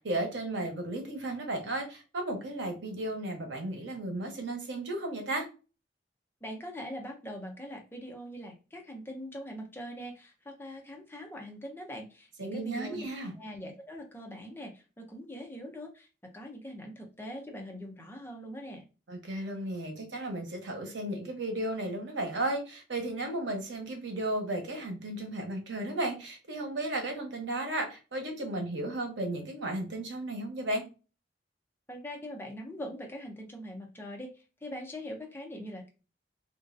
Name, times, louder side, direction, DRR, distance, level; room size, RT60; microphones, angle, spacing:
voice 1, 0.0-5.5 12.4-13.3 19.1-30.8, right 1 dB, 90° right, 3 dB, 1.0 m, -34 dB
voice 2, 6.4-13.1 13.4-16.1 16.3-18.8 31.9-34.3 34.6-35.9, equal, 10° left, 1 dB, 0.6 m, -42 dB
3.0 x 2.5 x 2.6 m, 0.32 s
head